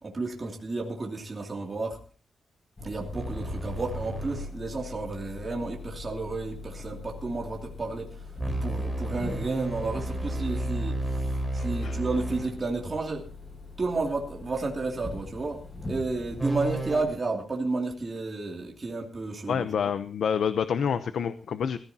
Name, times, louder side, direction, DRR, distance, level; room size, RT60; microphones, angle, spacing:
voice 1, 0.0-2.0 2.8-8.3 8.6-13.2 13.8-19.9, right 3 dB, 25° right, -1 dB, 2.7 m, -32 dB
sound 1, 2.8-17.2, left 3 dB, 25° left, 6.9 m, -42 dB
sound 2, 3.1-4.5 8.4-12.5 16.4-17.0, right 1 dB, 5° right, 4.4 m, -32 dB
voice 2, 19.5-21.8, left 7 dB, 70° left, 11 dB, 0.8 m, -27 dB
21.5 x 14.5 x 2.9 m, 0.39 s
wide cardioid pair, 175°, 0 cm